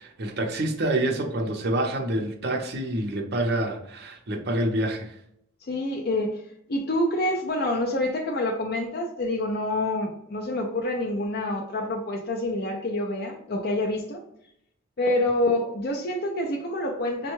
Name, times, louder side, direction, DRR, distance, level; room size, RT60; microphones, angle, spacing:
voice 1, 0.0-5.1, right 1 dB, 50° right, 2 dB, 0.6 m, -27 dB
voice 2, 5.7-6.4 6.7-14.2 15.0-17.3, left 1 dB, 45° left, 2 dB, 0.4 m, -27 dB
5.2 x 2.2 x 3.0 m, 0.75 s
head